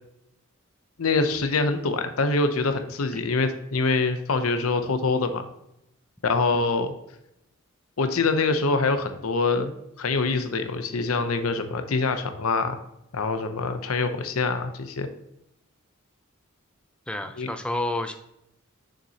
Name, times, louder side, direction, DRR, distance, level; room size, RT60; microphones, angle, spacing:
voice 1, 1.0-5.4 6.2-6.9 8.0-12.8 13.1-15.1 17.4-17.5, left 3 dB, 85° left, 8 dB, 0.7 m, -25 dB
voice 2, 17.1-18.1, left 1 dB, 5° left, 7 dB, 0.4 m, -29 dB
6.6 x 6.2 x 2.9 m, 0.81 s
head